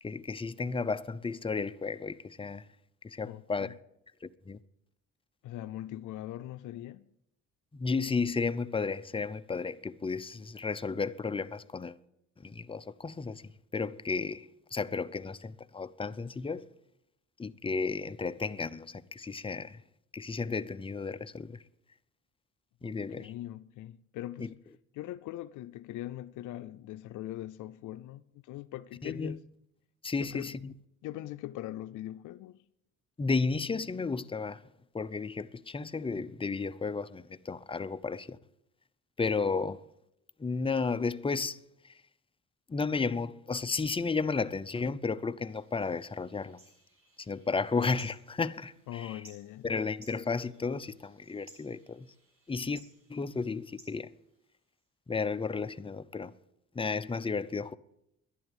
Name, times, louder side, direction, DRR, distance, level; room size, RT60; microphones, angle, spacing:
voice 1, 0.0-2.7 3.0-3.7 4.2-4.6 7.7-12.0 12.4-16.7 17.4-19.8 20.1-21.6 22.8-23.3 24.4-24.5 29.0-29.4 30.0-30.7 33.2-34.6 34.9-38.4 39.2-39.8 40.4-42.0 42.7-46.6 47.2-49.2 49.6-52.1 52.5-52.8 53.1-54.1 55.1-56.3 56.7-57.8, left 4 dB, 20° left, 0.6 m, -33 dB
voice 2, 3.2-3.8 5.4-7.1 22.8-24.5 24.9-29.4 30.2-30.5 31.0-32.6 48.9-49.7, left 14 dB, 80° left, 0.5 m, -41 dB
sound 1, 45.5-54.9, right 2 dB, 45° right, 7.9 m, -60 dB
11.5 x 11.0 x 9.0 m
cardioid pair, 90°, 30 cm